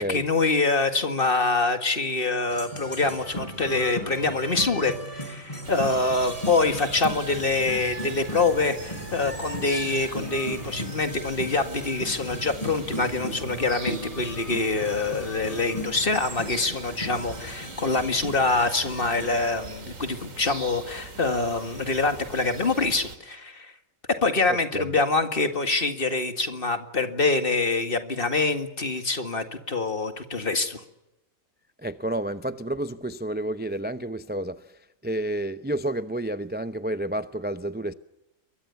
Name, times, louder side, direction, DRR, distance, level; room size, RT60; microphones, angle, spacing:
voice 1, 0.0-23.7 24.2-30.8, left 3 dB, 40° left, 2.2 m, -25 dB
sound 1, 2.5-19.3, equal, 25° left, 5.7 m, -37 dB
sound 2, 5.6-23.2, right 3 dB, 75° right, 2.8 m, -41 dB
voice 2, 24.5-25.0 31.8-37.9, right 1 dB, 10° right, 0.6 m, -30 dB
27.5 x 23.0 x 7.1 m
omnidirectional pair, 1.4 m